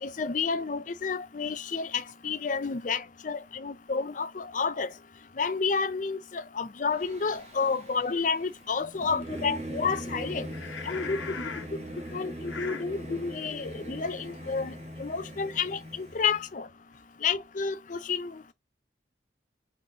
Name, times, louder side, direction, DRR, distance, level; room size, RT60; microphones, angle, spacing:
voice 1, 0.0-4.9 5.4-10.5 10.9-11.2 12.1-14.7 15.0-16.7 17.2-18.4, left 5 dB, 45° left, 0.5 m, -30 dB
Singing / Musical instrument, 6.9-16.5, right 1 dB, 35° right, 1.1 m, -41 dB
voice 2, 8.8-9.3 10.5-12.9 13.2-13.5 16.9-17.0, left 6 dB, 90° left, 1.2 m, -42 dB
3.9 x 3.7 x 2.8 m
head